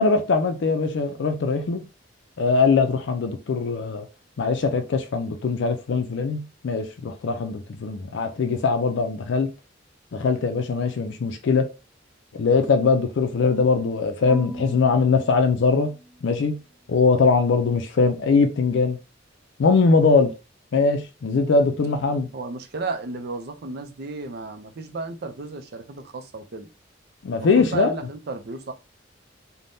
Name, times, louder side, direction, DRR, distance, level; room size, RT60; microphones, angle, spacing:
voice 1, 0.0-1.8 2.4-4.1 4.4-9.5 10.1-11.7 12.3-15.9 16.2-16.6 16.9-19.0 19.6-20.3 20.7-22.3 27.2-27.9, left 4 dB, 65° left, 0.4 m, -21 dB
Marimba xylophone / Wood, 14.3-16.5, equal, 15° right, 0.7 m, -39 dB
voice 2, 22.3-26.7 27.4-28.7, right 3 dB, 55° right, 0.5 m, -33 dB
3.4 x 2.1 x 2.6 m
head